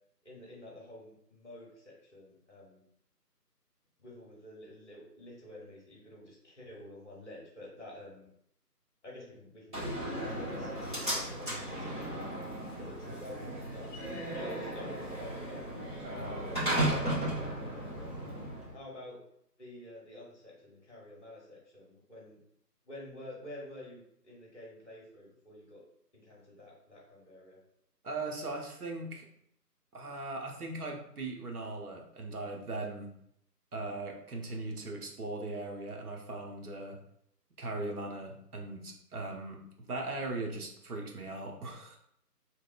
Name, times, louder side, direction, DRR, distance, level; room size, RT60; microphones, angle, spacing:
voice 1, 0.2-2.8 4.0-8.3 9.0-12.3 12.8-13.9 14.3-18.4 18.7-19.2 19.6-22.4 22.9-25.8 26.1-27.6, left 1 dB, 45° left, -3 dB, 1.0 m, -49 dB
Slam, 9.7-18.7, right 1 dB, 30° right, 1.0 m, -35 dB
voice 2, 28.0-29.3 29.9-33.1 33.7-37.0 37.6-39.6 39.9-42.0, right 2 dB, 65° right, 1 dB, 0.7 m, -39 dB
2.7 x 2.2 x 2.3 m, 0.72 s
figure-of-eight pair, 160°, 49 cm